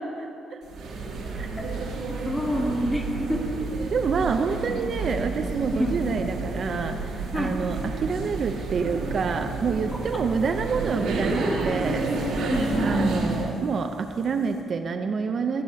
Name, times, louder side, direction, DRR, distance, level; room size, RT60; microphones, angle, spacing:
sound 1, 0.6-13.6, right 3 dB, 85° right, 1.8 m, -30 dB
voice 1, 2.2-3.4 5.7-6.0 7.3-7.6 9.9-10.2 12.5-13.4, equal, 10° left, 2 dB, 1.1 m, -27 dB
voice 2, 3.9-12.0 12.8-15.6, right 5 dB, 45° right, 6 dB, 0.4 m, -27 dB
14.0 x 4.9 x 5.7 m, 2.7 s
cardioid pair, 140°, 0 cm